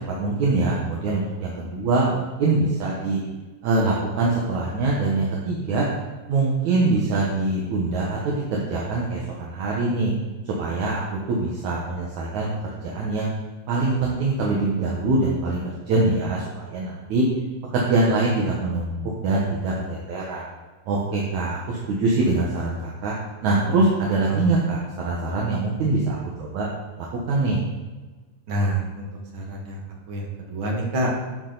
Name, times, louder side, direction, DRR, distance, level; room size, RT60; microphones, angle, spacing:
voice 1, 0.1-3.2 3.6-5.9 6.3-10.1 10.5-11.0 11.3-13.3 13.7-17.3 17.7-20.4 20.9-23.1 23.4-26.7 27.3-27.6, right 3 dB, 65° right, -4 dB, 2.5 m, -23 dB
voice 2, 28.5-29.1 29.3-29.8 30.1-31.1, right 1 dB, 45° right, -1 dB, 2.0 m, -27 dB
12.0 x 7.2 x 4.0 m, 1.3 s
omnidirectional pair, 3.9 m